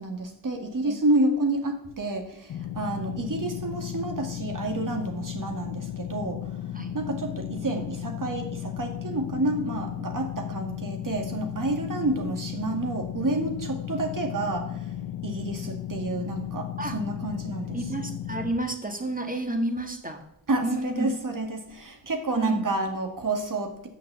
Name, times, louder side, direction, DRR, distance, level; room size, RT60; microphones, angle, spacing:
voice 1, 0.0-6.6 6.9-14.9 15.2-17.8 20.5-23.9, right 2 dB, 55° right, 4 dB, 2.1 m, -29 dB
sound 1, 2.5-18.5, left 11 dB, 55° left, 0.6 m, -35 dB
voice 2, 17.7-20.2 20.6-21.1 22.3-22.6, right 2 dB, 20° right, 5 dB, 1.9 m, -30 dB
7.3 x 6.6 x 7.0 m, 0.72 s
cardioid pair, 45°, 39 cm